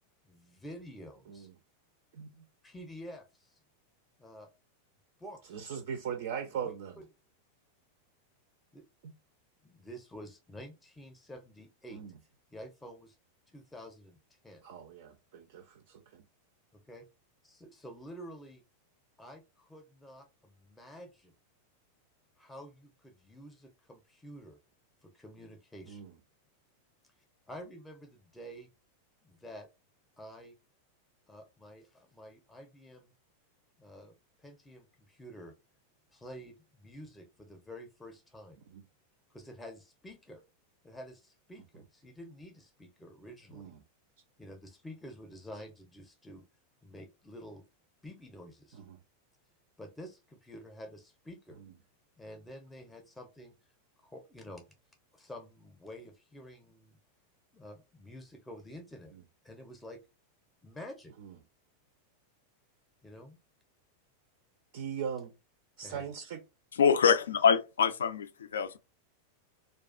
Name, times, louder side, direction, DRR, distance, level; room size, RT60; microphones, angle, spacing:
voice 1, 0.2-1.5 2.6-3.6 4.2-4.5 5.2-5.6 6.6-7.1 8.7-8.9 9.6-12.0 12.5-13.2 13.5-14.6 16.7-17.1 17.4-18.6 19.2-21.3 22.4-24.6 25.0-26.1 27.5-28.7 29.2-29.7 30.2-30.5 31.3-33.1 33.8-35.5 36.1-38.6 39.3-40.4 40.8-43.7 44.4-46.4 46.8-47.6 48.0-48.8 49.8-51.6 52.2-53.5 54.0-54.8 55.1-57.0 57.5-59.2 59.4-60.0 60.6-61.1 63.0-63.4 65.8-66.0, equal, 10° left, 0.6 m, -49 dB
voice 2, 2.1-2.4 5.5-7.0 9.0-9.1 11.9-12.1 14.6-16.2 25.9-26.1 38.7-38.8 43.5-43.8 48.8-49.0 51.6-51.7 61.2-61.4 64.7-65.3 65.8-66.4, right 7 dB, 55° right, 0.4 m, -40 dB
voice 3, 66.7-68.8, left 7 dB, 65° left, 0.3 m, -25 dB
2.3 x 2.3 x 2.3 m
figure-of-eight pair, 90°, 0 cm